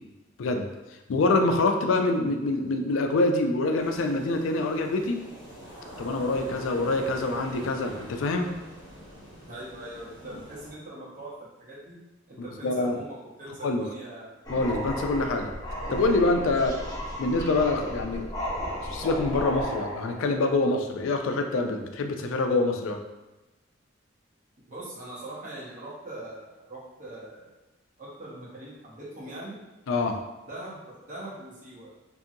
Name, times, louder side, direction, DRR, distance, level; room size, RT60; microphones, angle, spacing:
voice 1, 1.1-5.2 6.0-8.5 12.6-13.0 13.6-13.8 14.5-15.5 15.9-16.8 17.2-18.3 18.9-23.0 29.9-30.2, left 2 dB, 85° left, 5 dB, 0.4 m, -25 dB
sound 1, 3.8-10.7, equal, 80° right, 1.4 m, -45 dB
voice 2, 9.4-11.3 11.6-12.0 12.3-14.4 24.7-27.6 28.0-29.6 30.5-32.0, right 1 dB, 45° right, -7 dB, 0.8 m, -41 dB
sound 2, 14.4-20.5, equal, 20° left, 0.6 m, -34 dB
2.6 x 2.5 x 2.7 m, 1.0 s
head